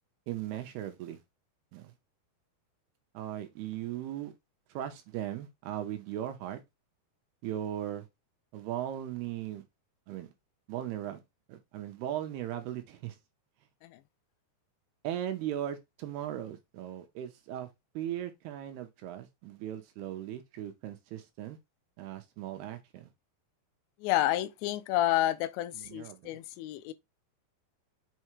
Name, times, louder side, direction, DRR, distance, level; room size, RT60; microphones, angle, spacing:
voice 1, 0.3-1.2 1.7-1.9 3.1-4.3 4.7-6.6 7.4-8.1 8.5-9.6 10.1-10.3 10.7-11.2 11.5-13.2 15.0-17.7 17.9-21.6 22.0-23.1 25.8-26.3, right 11 dB, 75° right, 2.6 m, -38 dB
voice 2, 24.0-26.9, left 14 dB, 90° left, 2.9 m, -30 dB
6.5 x 4.8 x 3.1 m
omnidirectional pair, 5.1 m